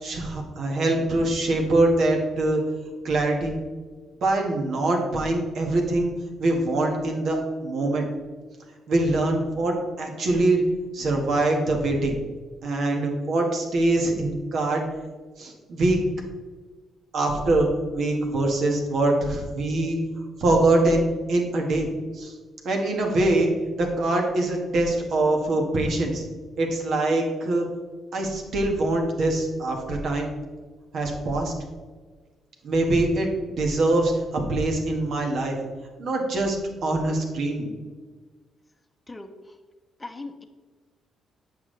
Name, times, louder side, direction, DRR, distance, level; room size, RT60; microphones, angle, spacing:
voice 1, 0.0-2.6 3.0-3.5 4.1-6.1 6.4-7.4 7.6-8.1 8.9-10.6 10.9-12.2 12.6-14.8 15.4-16.0 17.1-20.0 20.4-21.0 21.3-22.3 22.6-23.5 23.8-26.2 26.6-27.7 28.1-30.3 30.9-31.5 32.6-33.3 33.6-34.2 34.5-35.6 36.0-36.6 36.8-37.7, right 2 dB, 65° right, 1 dB, 1.8 m, -23 dB
voice 2, 39.1-39.6 40.0-40.4, left 2 dB, 15° left, 5 dB, 0.8 m, -39 dB
8.5 x 6.1 x 3.3 m, 1.4 s
cardioid pair, 90°, 0 cm